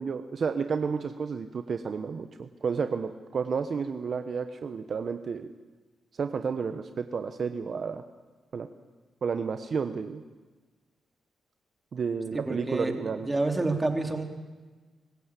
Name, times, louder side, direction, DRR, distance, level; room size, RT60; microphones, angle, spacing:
voice 1, 0.0-5.5 6.2-8.0 8.5-8.7 9.2-10.2 11.9-13.3, right 5 dB, 55° right, 8 dB, 1.0 m, -31 dB
voice 2, 12.5-12.9 13.3-14.2, right 2 dB, 20° right, 4 dB, 3.2 m, -28 dB
25.0 x 15.0 x 8.4 m, 1.3 s
cardioid pair, 65°, 0 cm